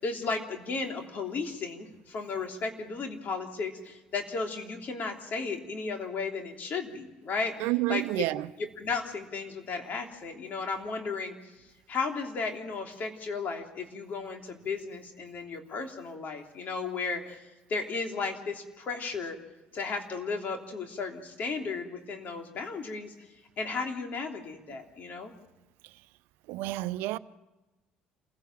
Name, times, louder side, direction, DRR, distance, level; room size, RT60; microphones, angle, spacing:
voice 1, 0.0-8.0 8.8-11.3 11.9-17.4 17.7-19.4 19.7-23.1 23.6-25.3, left 4 dB, 50° left, 3.3 m, -34 dB
voice 2, 7.6-8.5 26.5-27.2, right 18 dB, 75° right, 0.7 m, -29 dB
27.5 x 16.0 x 7.5 m
hypercardioid pair, 70°, 4 cm